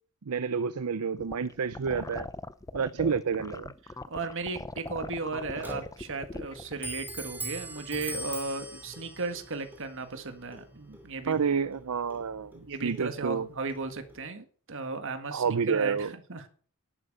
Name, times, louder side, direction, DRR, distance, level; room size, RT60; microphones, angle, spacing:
voice 1, 0.3-2.3 2.7-3.7 11.3-13.5 15.3-16.1, right 6 dB, 85° right, 14 dB, 0.6 m, -29 dB
sound 1, 1.2-6.7, left 2 dB, 15° left, 0.6 m, -40 dB
voice 2, 4.1-11.4 12.6-16.5, right 3 dB, 60° right, 7 dB, 1.8 m, -36 dB
Clock, 5.0-14.3, right 1 dB, 10° right, 2.7 m, -43 dB
11.0 x 8.8 x 6.6 m, 0.43 s
head